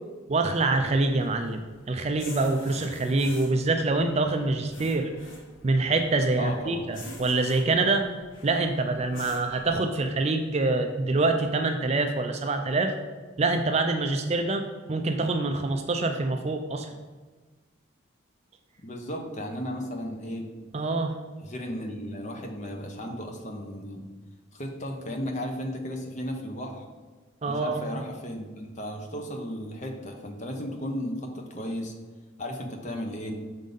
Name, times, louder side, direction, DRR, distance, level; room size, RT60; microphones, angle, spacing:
voice 1, 0.3-1.6 1.9-5.1 5.6-8.1 8.4-12.9 13.4-16.9 20.7-21.1 27.4-27.8, right 3 dB, 30° right, 6 dB, 0.4 m, -25 dB
sound 1, 0.6-9.7, left 1 dB, 65° left, 1.3 m, -47 dB
voice 2, 6.4-6.9 18.8-20.5 21.4-24.1 24.5-26.9 27.4-31.9 32.4-33.3, equal, 35° left, 3 dB, 0.9 m, -35 dB
6.2 x 4.0 x 5.2 m, 1.3 s
head